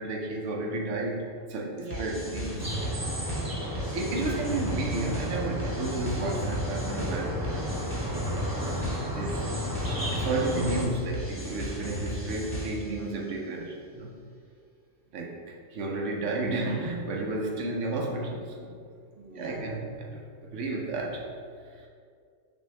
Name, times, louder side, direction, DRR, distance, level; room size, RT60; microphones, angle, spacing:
voice 1, 0.0-2.9 3.9-7.6 8.2-9.5 10.0-14.1 15.1-18.8 19.3-20.2 20.5-21.3 21.8-21.9, right 2 dB, 75° right, 0 dB, 1.0 m, -32 dB
voice 2, 1.8-2.2 3.4-4.0 19.2-19.8, right 2 dB, 45° right, -4 dB, 0.9 m, -44 dB
sound 1, 1.9-13.0, equal, 10° left, 0.9 m, -35 dB
sound 2, 2.6-10.8, equal, 25° right, 0.5 m, -33 dB
6.1 x 2.7 x 3.2 m, 2.2 s
omnidirectional pair, 1.3 m